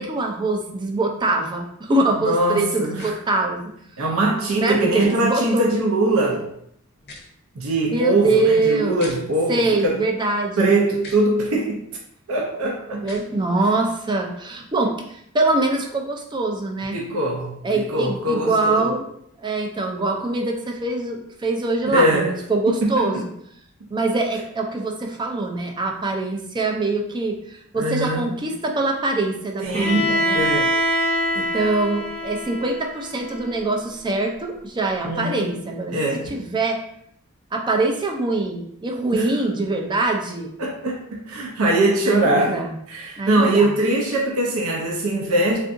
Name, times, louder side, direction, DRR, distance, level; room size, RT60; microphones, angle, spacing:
voice 1, 0.0-3.6 4.6-5.7 7.9-9.0 9.5-10.7 13.0-17.0 17.6-19.0 19.4-23.3 23.9-30.4 31.3-36.0 36.3-36.8 37.5-40.5 42.1-42.7 43.2-43.7, right 2 dB, 20° right, 2 dB, 0.4 m, -23 dB
voice 2, 2.2-3.1 4.0-6.4 7.6-10.0 10.6-11.8 12.3-13.0 16.9-18.9 21.9-22.3 22.7-23.1 27.7-28.4 29.6-30.7 35.0-35.5 35.9-36.4 39.1-39.3 39.6-39.7 40.6-42.6 42.9-45.6, right 2 dB, 70° right, -1 dB, 0.6 m, -22 dB
sound 1, 3.0-3.1 5.0-5.1 7.0-7.3 9.0-9.2 11.0-11.2 13.0-13.3, left 2 dB, 50° left, 0.6 m, -40 dB
Bowed string instrument, 29.7-33.6, equal, 10° left, 0.8 m, -24 dB
3.6 x 2.5 x 2.5 m, 0.71 s
head